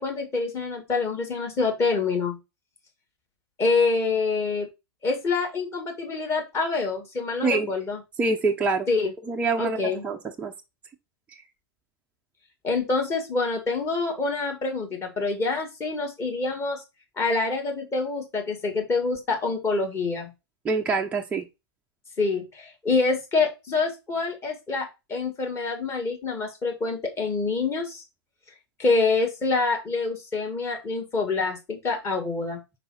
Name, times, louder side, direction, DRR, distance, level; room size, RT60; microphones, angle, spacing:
voice 1, 0.0-2.4 3.6-4.7 5.0-8.0 8.9-9.1 9.6-10.1 12.6-16.8 17.2-20.3 22.2-28.0 28.8-32.6, left 3 dB, 20° left, 2.0 m, -26 dB
voice 2, 8.2-8.9 9.3-10.5 20.6-21.5, right 3 dB, 10° right, 0.6 m, -25 dB
5.4 x 4.6 x 4.1 m
figure-of-eight pair, 110°, 13 cm